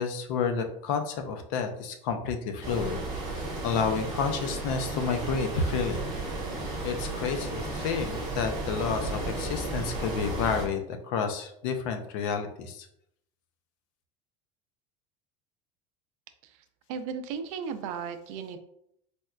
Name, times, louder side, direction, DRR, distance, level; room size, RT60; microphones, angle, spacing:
voice 1, 0.0-3.4 3.6-6.1 6.8-12.9, left 5 dB, 70° left, 6 dB, 0.5 m, -30 dB
sound 1, 2.6-10.6, right 2 dB, 25° right, 0.9 m, -34 dB
voice 2, 16.9-18.6, right 6 dB, 80° right, 8 dB, 0.4 m, -35 dB
4.1 x 2.2 x 2.3 m, 0.73 s
cardioid pair, 175°, 17 cm